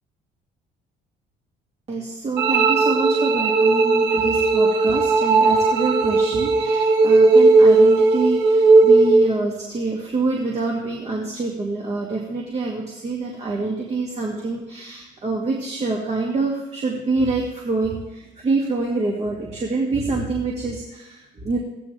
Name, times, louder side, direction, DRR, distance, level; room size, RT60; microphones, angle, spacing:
voice 1, 1.9-21.6, right 3 dB, 35° right, -2 dB, 2.5 m, -26 dB
sound 1, 2.4-9.4, right 3 dB, 85° right, 1.3 m, -16 dB
16.0 x 15.0 x 3.5 m, 1.0 s
cardioid pair, 110°, 17 cm